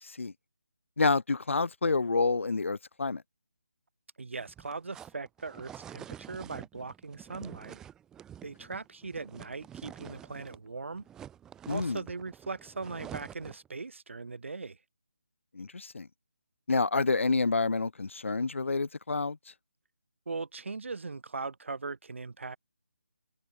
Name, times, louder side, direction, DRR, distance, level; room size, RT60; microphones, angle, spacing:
voice 1, 0.0-0.3 1.0-3.2 11.7-12.0 15.5-16.1 16.7-19.4, left 3 dB, 65° left, 3.1 m, -28 dB
voice 2, 4.2-7.8 8.4-11.1 11.7-14.8 20.3-22.6, right 4 dB, 60° right, 5.5 m, -39 dB
sound 1, 4.3-10.7 10.9-13.7, right 10 dB, 10° right, 7.0 m, -48 dB
figure-of-eight pair, 155°, 7 cm